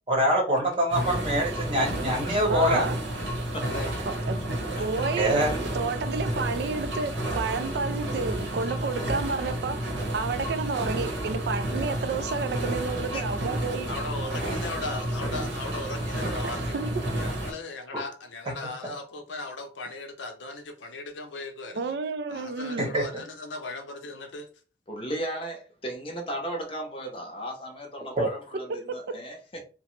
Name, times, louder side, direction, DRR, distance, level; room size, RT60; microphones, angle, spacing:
voice 1, 0.1-2.9 5.2-5.5 22.8-23.0 28.2-28.3, equal, 30° right, 0.9 m, -24 dB
sound 1, 0.9-17.5, right 1 dB, 85° right, 0.9 m, -31 dB
voice 2, 2.5-3.0 4.1-4.4 4.8-9.9 10.1-13.9 16.4-17.1 21.7-22.9 28.5-28.9, right 4 dB, 60° right, 0.3 m, -31 dB
voice 3, 3.6-4.0 13.9-16.8 17.2-21.9 22.3-24.5 28.1-28.2, left 2 dB, 85° left, 0.6 m, -37 dB
voice 4, 4.8-5.1 13.1-13.2 24.9-29.6, right 1 dB, 30° left, 0.6 m, -35 dB
2.9 x 2.0 x 3.0 m
head